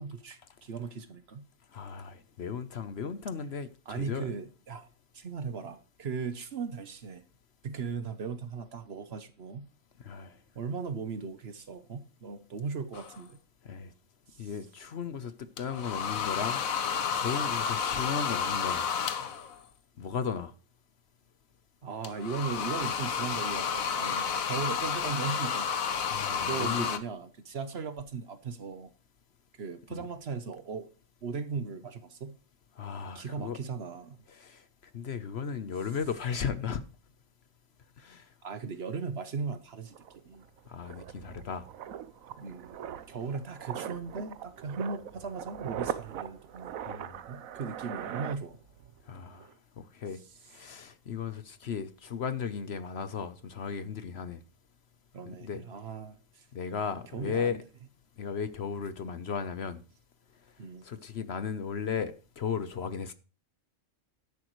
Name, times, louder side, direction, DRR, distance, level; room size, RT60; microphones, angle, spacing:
voice 1, 0.0-1.5 3.9-4.9 5.1-7.2 7.6-9.7 10.5-13.4 14.3-14.5 21.8-25.7 26.5-28.9 29.6-30.9 31.2-32.4 33.1-34.2 38.4-40.0 40.2-40.5 42.4-42.8 43.1-46.8 47.3-48.6 55.1-56.5 57.1-57.6 60.6-60.8, right 5 dB, 55° right, 1.1 m, -37 dB
voice 2, 1.7-4.3 10.0-10.4 13.6-13.9 14.4-16.6 17.2-18.8 20.0-20.5 26.1-26.9 29.9-30.1 32.8-33.6 34.3-34.6 34.9-36.8 38.0-38.3 40.7-41.6 46.9-47.2 49.1-49.5 49.8-50.2 50.5-54.4 55.3-55.6 56.5-57.6 58.2-59.8 60.8-63.1, left 6 dB, 55° left, 1.0 m, -35 dB
sound 1, 12.9-13.2 15.6-19.6 22.0-27.0, left 7 dB, 85° left, 1.4 m, -31 dB
sound 2, 39.5-39.6 39.9-49.0 49.3-49.5, right 10 dB, 85° right, 1.1 m, -41 dB
12.0 x 10.5 x 3.1 m
omnidirectional pair, 1.4 m